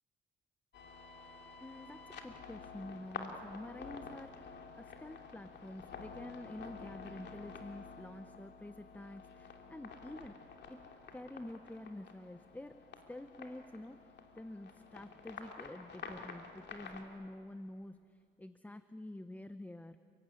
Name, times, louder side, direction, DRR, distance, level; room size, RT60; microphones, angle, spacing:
sound 1, 0.7-17.0, left 5 dB, 60° left, 2.9 m, -50 dB
voice 1, 1.6-10.8 11.1-12.8 13.1-20.0, left 1 dB, 10° left, 11 dB, 0.8 m, -48 dB
30.0 x 17.0 x 9.8 m, 2.4 s
cardioid pair, 90°, 20 cm